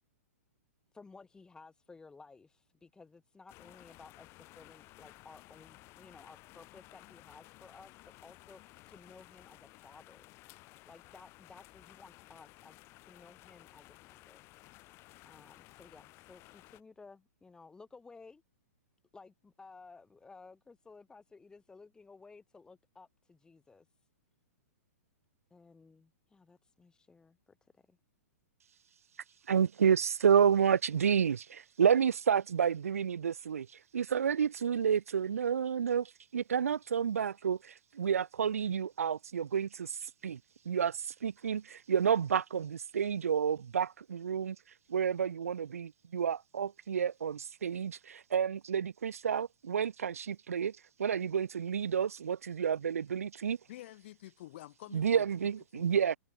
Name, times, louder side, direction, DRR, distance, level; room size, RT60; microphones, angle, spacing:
voice 1, 0.9-10.3 10.9-14.4 15.3-18.4 19.1-23.9 25.5-28.0, left 4 dB, 10° left, 3.5 m, -56 dB
sound 1, 3.5-16.8, left 20 dB, 30° left, 2.4 m, -56 dB
voice 2, 29.5-33.7 33.9-40.4 40.6-44.6 44.9-53.6 54.9-56.2, right 7 dB, 65° right, 1.2 m, -30 dB
voice 3, 53.7-55.8, left 15 dB, 45° left, 3.1 m, -49 dB
figure-of-eight pair, 110°, 8 cm